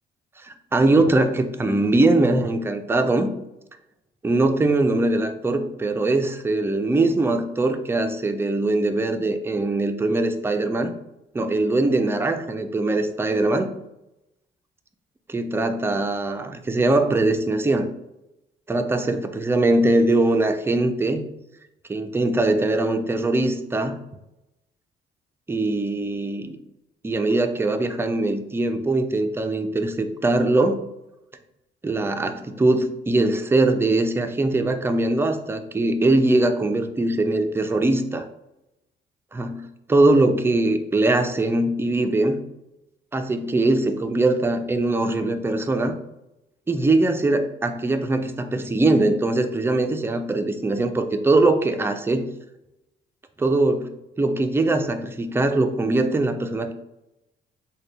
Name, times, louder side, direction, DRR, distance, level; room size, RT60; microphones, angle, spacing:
voice 1, 0.4-3.3 4.2-10.9 11.3-13.7 15.3-17.9 18.7-21.3 21.9-24.0 25.5-26.6 27.0-30.8 31.8-38.3 39.3-42.4 43.1-46.0 46.7-52.2 53.4-53.9 54.2-56.7, right 2 dB, 10° right, 7 dB, 0.4 m, -21 dB
3.8 x 2.2 x 3.4 m, 0.90 s
cardioid pair, 90°, 20 cm